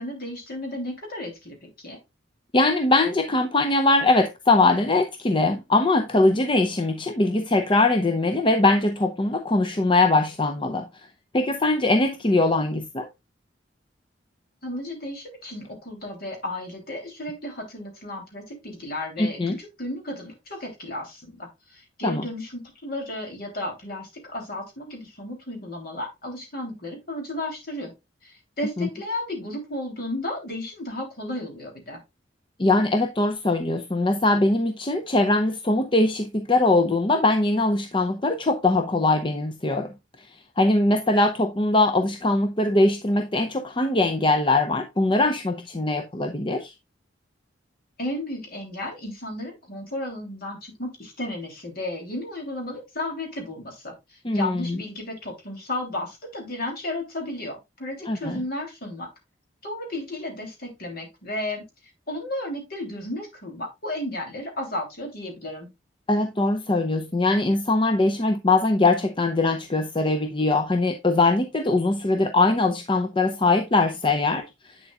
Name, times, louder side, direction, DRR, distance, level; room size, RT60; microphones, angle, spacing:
voice 1, 0.0-2.0 14.6-27.9 28.2-32.0 48.0-59.1 59.6-61.6 62.1-65.7, left 1 dB, 55° left, 3.2 m, -33 dB
voice 2, 2.5-11.1 11.3-13.1 19.2-19.6 22.0-22.3 28.8-28.9 32.6-39.9 40.6-46.7 54.2-54.8 58.1-58.4 66.1-74.8, left 2 dB, 25° left, 0.6 m, -22 dB
8.2 x 7.0 x 2.4 m
head